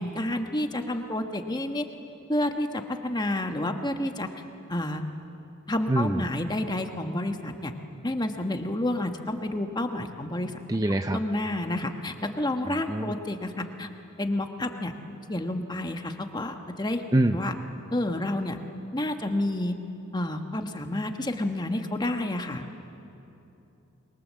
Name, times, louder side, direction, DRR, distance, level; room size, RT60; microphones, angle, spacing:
voice 1, 0.0-1.8 2.3-4.3 4.7-5.0 5.7-7.7 8.0-10.5 11.1-13.9 14.2-14.9 15.3-17.0 17.3-17.5 17.9-18.6 18.9-19.8 20.1-22.7, left 1 dB, 20° left, 5 dB, 1.2 m, -29 dB
voice 2, 5.9-6.3 10.7-11.2 12.9-13.1 17.1-17.4, right 1 dB, 15° right, 7 dB, 0.6 m, -24 dB
26.5 x 22.5 x 7.5 m, 2.9 s
head